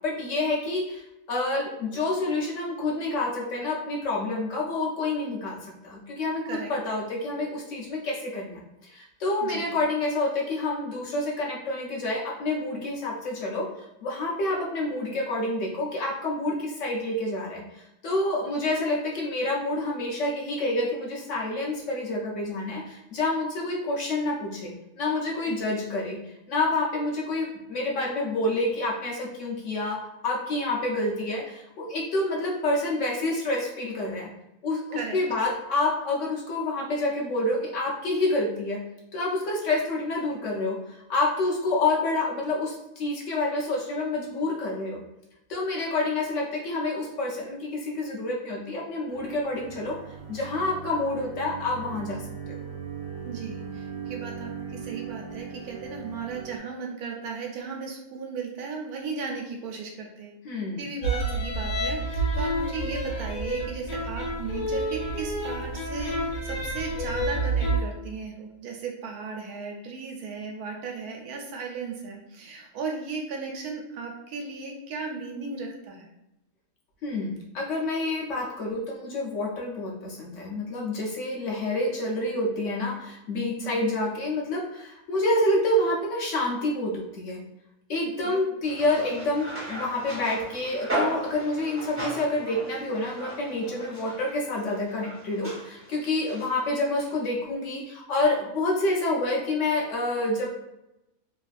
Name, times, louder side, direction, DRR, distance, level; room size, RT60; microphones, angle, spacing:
voice 1, 0.0-26.2 26.5-34.3 34.6-38.8 39.1-45.0 45.5-50.0 50.3-52.6 60.4-60.8 77.0-87.4 87.9-100.5, left 2 dB, 65° left, -2 dB, 0.8 m, -28 dB
sound 1, 49.1-56.6, right 7 dB, 70° right, 1.0 m, -39 dB
voice 2, 53.2-60.4 60.8-76.1 83.6-83.9 88.2-88.4, right 5 dB, 90° right, 1 dB, 1.1 m, -36 dB
sound 2, 61.0-67.8, right 1 dB, 80° left, 1.2 m, -29 dB
sound 3, 88.6-96.5 97.0-97.1, right 1 dB, 15° right, 0.6 m, -36 dB
3.0 x 2.5 x 2.3 m, 0.90 s
omnidirectional pair, 1.6 m